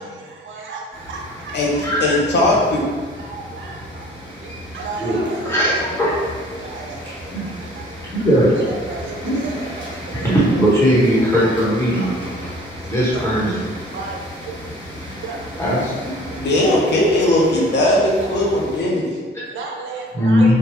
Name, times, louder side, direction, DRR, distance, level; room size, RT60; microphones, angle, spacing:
voice 1, 0.0-2.2 3.1-4.1 4.4-8.1 8.5-11.5 11.9-12.5 12.8-13.2 13.9-15.4 16.1-16.9 17.4-20.5, right 3 dB, 75° right, 0 dB, 0.5 m, -35 dB
sound 1, 0.9-18.8, equal, 20° right, 1.3 m, -35 dB
voice 2, 2.0-2.8 16.3-19.1, left 1 dB, 60° left, -3 dB, 0.7 m, -18 dB
voice 3, 5.0-6.1 7.3-7.5 8.1-8.5 9.2-9.3 10.1-12.1 12.9-13.6 15.6-16.1 20.1-20.5, equal, 15° left, -8 dB, 1.2 m, -18 dB
3.1 x 2.3 x 3.1 m, 1.5 s
cardioid pair, 100°, 20 cm